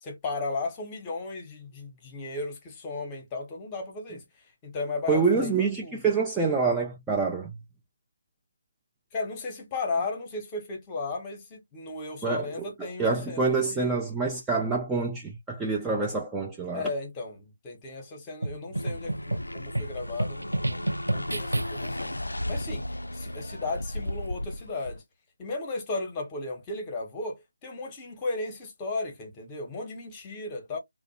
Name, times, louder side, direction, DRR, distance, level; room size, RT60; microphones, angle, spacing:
voice 1, 0.0-4.2 4.6-6.1 9.1-13.9 16.7-22.8 23.1-25.0 25.4-30.8, left 3 dB, 20° left, 0.8 m, -35 dB
voice 2, 5.1-7.5 12.2-12.7 13.0-16.9, right 4 dB, 10° right, 0.3 m, -26 dB
sound 1, 18.4-22.1, right 1 dB, 85° right, 0.4 m, -31 dB
sound 2, 18.7-25.0, left 1 dB, 85° left, 0.3 m, -35 dB
2.5 x 2.1 x 2.7 m
figure-of-eight pair, 155°, 0 cm